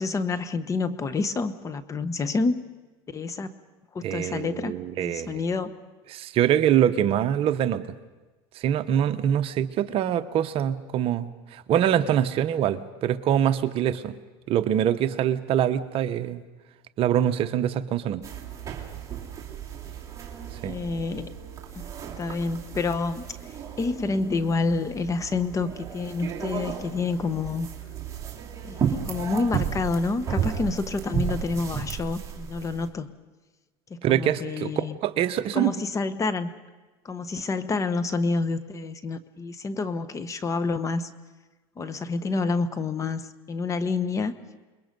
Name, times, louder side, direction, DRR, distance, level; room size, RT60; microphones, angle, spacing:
voice 1, 0.0-2.6 3.1-3.5 3.9-5.7 20.6-21.3 21.7-21.9 22.2-23.2 23.8-27.7 28.6-33.1 33.9-35.0 35.5-36.5 37.0-41.1 41.8-44.3, left 3 dB, 25° left, 12 dB, 1.1 m, -28 dB
voice 2, 4.0-5.4 6.1-7.8 8.6-14.1 14.5-16.4 17.0-18.2 20.6-20.7 34.0-35.7, right 10 dB, 45° right, 11 dB, 1.0 m, -24 dB
sound 1, 18.2-32.9, right 8 dB, 25° right, 2.9 m, -34 dB
29.0 x 21.5 x 5.4 m, 1.2 s
supercardioid pair, 120°, 13 cm